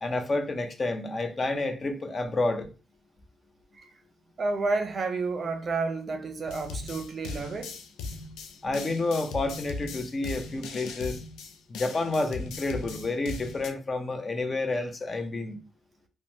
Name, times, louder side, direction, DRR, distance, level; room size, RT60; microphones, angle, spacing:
voice 1, 0.0-2.7 8.6-11.2 11.7-15.6, left 2 dB, 35° left, 0.6 m, -29 dB
voice 2, 4.4-7.8, right 3 dB, 45° right, 0.5 m, -30 dB
sound 1, 6.5-13.7, left 4 dB, 85° left, 0.4 m, -39 dB
3.0 x 2.1 x 2.7 m
cardioid pair, 90°, 0 cm